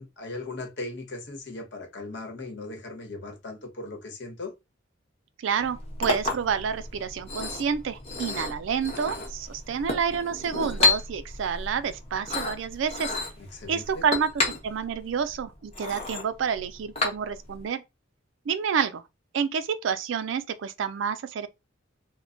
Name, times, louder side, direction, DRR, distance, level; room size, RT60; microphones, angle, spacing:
voice 1, 0.0-4.5 13.4-14.1, left 2 dB, 60° left, 0.9 m, -38 dB
voice 2, 5.4-13.2 13.7-14.3 14.6-17.8 18.5-19.0 19.3-21.5, right 6 dB, 70° right, 0.4 m, -29 dB
Chink clink, 5.6-17.6, left 3 dB, 30° left, 0.8 m, -31 dB
2.1 x 2.1 x 3.7 m
head